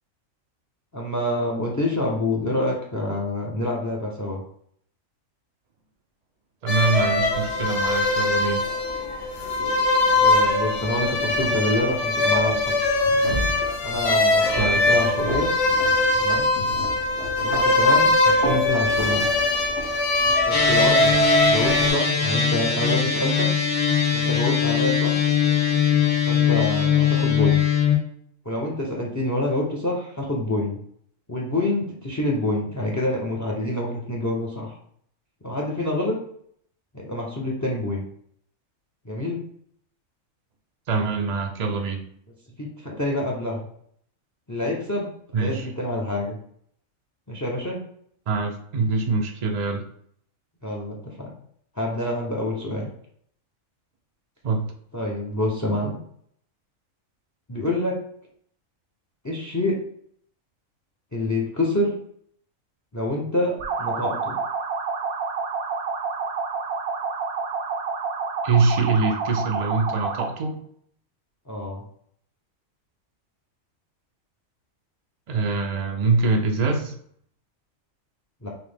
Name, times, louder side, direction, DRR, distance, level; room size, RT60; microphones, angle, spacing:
voice 1, 0.9-4.4 10.2-12.7 13.8-15.5 16.2-16.5 17.4-19.3 20.5-23.5 24.1-25.2 26.3-27.7 28.5-30.8 31.3-34.8 35.4-36.2 36.9-38.0 39.0-39.4 42.6-43.7 44.5-45.1 45.3-46.4 47.3-47.8 50.6-51.3 51.8-52.9 54.9-56.0 57.5-58.0 59.2-59.8 61.1-61.9 62.9-64.4 71.5-71.8 78.4-78.5, left 1 dB, 30° left, -1 dB, 0.3 m, -27 dB
voice 2, 6.6-8.6 14.5-14.8 40.9-42.0 45.3-45.7 48.3-49.8 54.4-54.7 68.4-70.6 75.3-76.9, right 4 dB, 70° right, 2 dB, 0.3 m, -24 dB
sound 1, 6.7-21.9, left 2 dB, 65° left, 1.1 m, -21 dB
sound 2, 20.5-27.9, left 7 dB, 90° left, 1.7 m, -21 dB
sound 3, 63.6-70.4, right 5 dB, 85° right, 1.1 m, -29 dB
5.8 x 2.0 x 3.4 m, 0.65 s
omnidirectional pair, 1.4 m